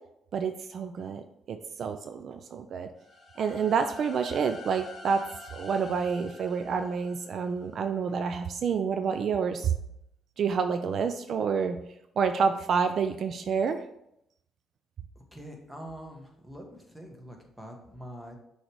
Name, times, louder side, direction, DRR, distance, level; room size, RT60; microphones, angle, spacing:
voice 1, 0.3-1.2 1.5-2.9 3.4-5.2 5.5-9.7 10.4-11.8 12.2-13.8, right 6 dB, 60° right, 8 dB, 0.4 m, -28 dB
sound 1, 3.0-7.8, left 2 dB, 30° left, 2.5 m, -47 dB
voice 2, 15.1-18.3, equal, 5° right, 1 dB, 1.4 m, -44 dB
6.3 x 3.3 x 4.6 m, 0.77 s
cardioid pair, 90°, 0 cm